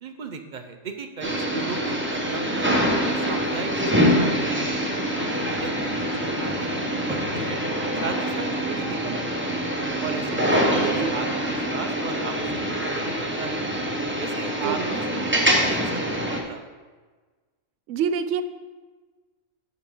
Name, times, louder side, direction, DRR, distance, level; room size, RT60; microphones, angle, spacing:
voice 1, 0.0-2.7 3.1-7.6 8.0-9.6 10.0-13.6 14.2-16.6, right 4 dB, 45° right, 7 dB, 0.6 m, -36 dB
sound 1, 1.2-16.4, equal, 10° right, 0.9 m, -25 dB
voice 2, 10.6-11.1 14.6-14.9 17.9-18.4, right 7 dB, 75° right, 11 dB, 0.9 m, -27 dB
9.5 x 6.0 x 3.7 m, 1.4 s
omnidirectional pair, 1.3 m